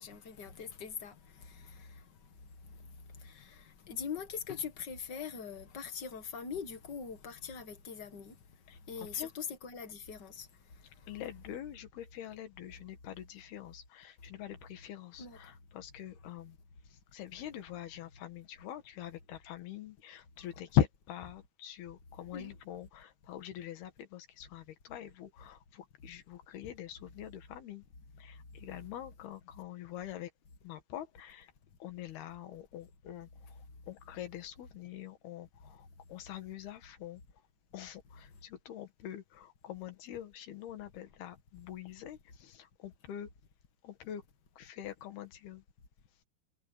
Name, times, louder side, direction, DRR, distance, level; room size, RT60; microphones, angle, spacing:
voice 1, 0.0-1.9 3.2-8.3 8.9-10.5 15.2-15.4 22.3-22.5, left 6 dB, 40° left, 1.6 m, -42 dB
voice 2, 11.1-16.6 17.1-27.8 28.2-30.3 30.6-31.5 31.8-33.3 33.9-37.2 37.7-43.3 43.8-44.2 44.6-45.6, left 11 dB, 80° left, 3.9 m, -42 dB
omnidirectional pair, 4.5 m